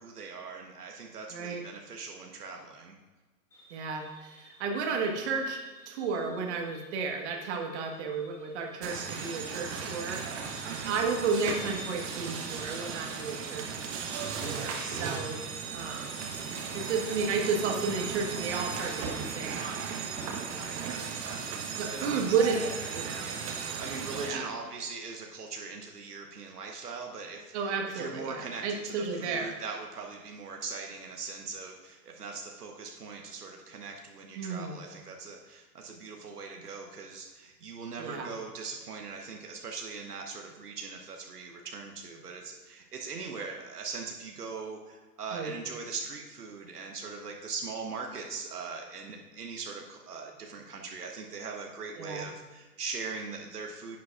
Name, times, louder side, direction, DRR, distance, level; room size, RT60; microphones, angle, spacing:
voice 1, 0.0-3.0 8.9-9.3 10.6-11.0 14.5-15.4 20.5-22.3 23.2-23.5 23.8-54.0, right 4 dB, 75° right, 2 dB, 1.2 m, -41 dB
voice 2, 1.3-1.6 3.7-5.6 5.9-10.2 10.8-13.9 14.4-15.4 15.7-16.1 16.7-19.8 20.8-21.0 21.8-22.6 22.9-23.3 24.2-24.5 27.5-29.5 34.3-34.8 38.0-38.3 45.3-45.5 52.0-52.3, right 5 dB, 45° right, 2 dB, 1.5 m, -32 dB
sound 1, 3.5-20.3, left 1 dB, 5° left, 1.5 m, -53 dB
sound 2, 8.8-24.3, right 6 dB, 25° right, 1.1 m, -36 dB
10.5 x 8.5 x 2.4 m, 1.3 s
figure-of-eight pair, 110°, 47 cm